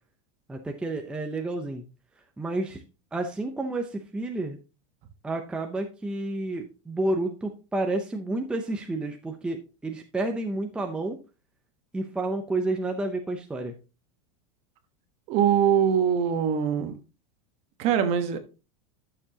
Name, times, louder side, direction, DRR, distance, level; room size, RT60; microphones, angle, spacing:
voice 1, 0.5-1.8 2.4-2.8 3.1-4.6 5.2-11.2 11.9-13.8, right 2 dB, 5° right, 0.6 m, -30 dB
voice 2, 15.3-17.0 17.8-18.4, right 8 dB, 40° right, 1.2 m, -23 dB
11.5 x 6.9 x 2.8 m
supercardioid pair, 160°, 17 cm